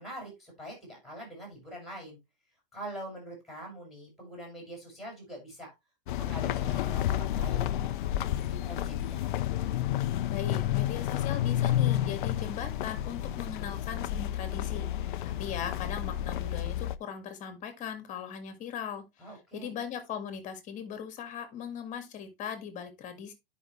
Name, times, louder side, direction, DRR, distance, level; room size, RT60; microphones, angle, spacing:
voice 1, 0.0-2.2 2.7-5.7 6.1-7.6 8.3-9.2 19.2-19.7, right 1 dB, ahead, 6.0 m, -44 dB
sound 1, 6.1-17.0, left 12 dB, 60° left, 0.6 m, -30 dB
voice 2, 10.3-19.0 19.5-23.3, left 8 dB, 25° left, 1.9 m, -39 dB
11.0 x 5.4 x 3.2 m
hypercardioid pair, 130°, 29 cm